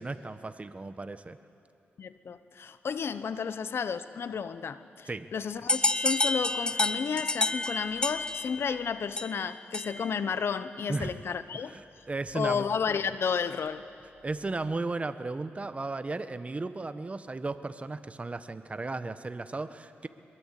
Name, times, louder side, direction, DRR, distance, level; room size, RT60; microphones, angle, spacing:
voice 1, 0.0-1.4 5.1-5.3 10.9-11.2 11.6-12.6 14.2-20.1, right 3 dB, 30° right, 11 dB, 1.1 m, -35 dB
voice 2, 2.0-11.8 12.3-13.9, left 6 dB, 70° left, 13 dB, 1.0 m, -32 dB
sound 1, 5.7-10.2, left 2 dB, 20° left, 0.8 m, -30 dB
23.5 x 21.5 x 8.3 m, 2.5 s
cardioid pair, 70°, 4 cm